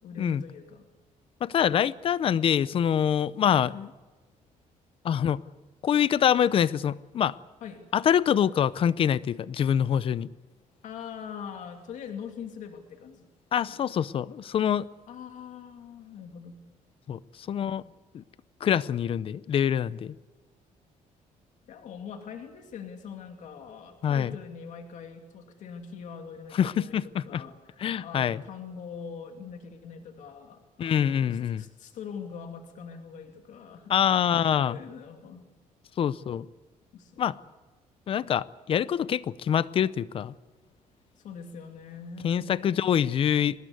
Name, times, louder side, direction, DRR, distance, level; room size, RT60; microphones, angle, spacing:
voice 1, 0.0-0.9 3.5-3.6 7.6-7.8 10.8-13.3 13.7-14.0 15.1-16.6 21.6-33.9 34.5-35.5 36.9-37.1 41.2-43.0, left 6 dB, 65° left, 2.7 m, -42 dB
voice 2, 1.4-3.9 5.0-5.4 5.8-7.4 7.9-10.3 13.5-14.9 17.1-17.2 17.5-17.8 18.1-18.2 18.6-20.1 24.0-24.3 26.5-27.4 27.8-28.4 30.8-31.7 33.9-34.8 36.0-36.5 37.2-37.4 38.1-40.3 42.2-43.6, left 9 dB, 40° left, 0.6 m, -25 dB
24.5 x 20.0 x 8.2 m
cardioid pair, 180°, 14 cm